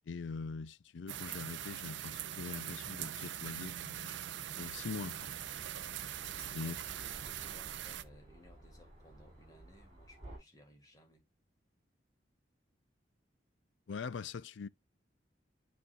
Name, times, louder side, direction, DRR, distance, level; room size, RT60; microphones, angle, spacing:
voice 1, 0.1-4.2 4.6-5.3 6.5-6.8 13.9-14.7, left 5 dB, 75° left, 0.4 m, -43 dB
sound 1, 1.1-8.0, right 10 dB, 75° right, 0.5 m, -42 dB
sound 2, 4.7-10.4, right 1 dB, 35° right, 2.9 m, -55 dB
voice 2, 6.3-11.2, left 1 dB, 20° left, 2.0 m, -61 dB
Shatter, 6.4-7.4, right 7 dB, 55° right, 1.6 m, -56 dB
11.0 x 4.2 x 2.5 m
head